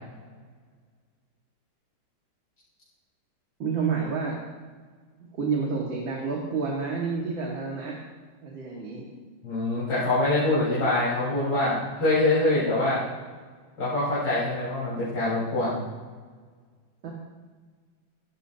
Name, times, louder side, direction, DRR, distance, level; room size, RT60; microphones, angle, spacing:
voice 1, 3.6-4.4 5.4-8.0 8.4-9.1 17.0-17.1, right 5 dB, 75° right, -3 dB, 2.8 m, -29 dB
voice 2, 9.4-13.0 13.8-15.8, left 2 dB, 80° left, -11 dB, 5.6 m, -24 dB
16.5 x 16.5 x 2.9 m, 1.5 s
omnidirectional pair, 2.1 m